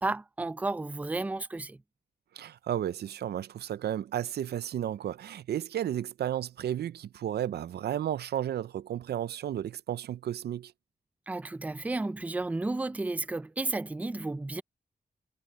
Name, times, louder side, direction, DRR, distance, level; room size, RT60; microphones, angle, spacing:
voice 1, 0.0-1.8 11.3-14.6, right 2 dB, 10° right, 0.4 m, -32 dB
voice 2, 2.4-10.7, right 11 dB, 90° right, 0.5 m, -33 dB
wide cardioid pair, 155°, 16 cm